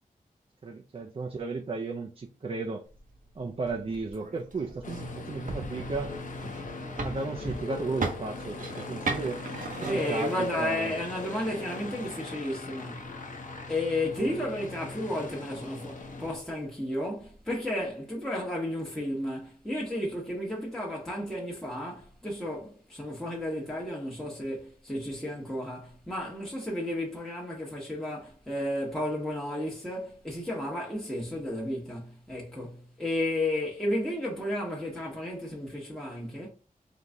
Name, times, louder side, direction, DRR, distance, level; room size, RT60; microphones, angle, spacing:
voice 1, 0.6-2.9 3.4-6.2 6.8-9.4 9.8-11.0, right 3 dB, 40° right, 0.5 m, -34 dB
sound 1, 2.9-10.8, right 3 dB, 65° right, 0.8 m, -39 dB
Aircraft, 4.8-16.4, left 3 dB, 65° left, 0.9 m, -39 dB
voice 2, 9.8-13.1 13.7-36.5, left 1 dB, 5° left, 1.0 m, -33 dB
4.0 x 3.1 x 3.5 m
wide cardioid pair, 105°, 15 cm